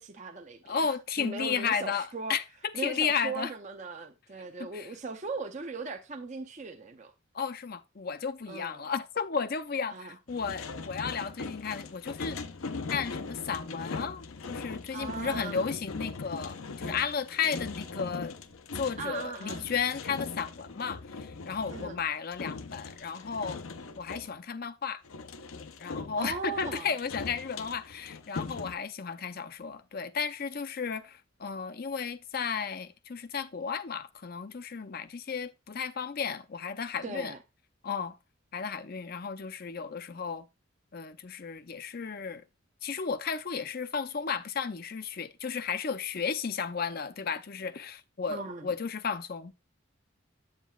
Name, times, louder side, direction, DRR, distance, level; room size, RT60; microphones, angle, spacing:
voice 1, 0.0-2.4 2.7-7.1 8.5-8.8 9.9-10.2 14.9-15.7 19.0-19.7 21.7-22.0 26.2-26.9 37.0-37.4 48.3-48.7, right 3 dB, 35° right, 0.6 m, -39 dB
voice 2, 0.6-3.5 4.6-4.9 7.3-12.4 12.9-18.4 18.7-23.6 24.0-25.0 25.8-37.3 37.8-38.2 38.5-40.5 40.9-42.4 42.8-49.5, left 6 dB, 45° left, 0.5 m, -34 dB
sound 1, 10.3-24.3 25.0-28.7, left 4 dB, 85° left, 0.7 m, -40 dB
8.3 x 7.3 x 2.3 m
head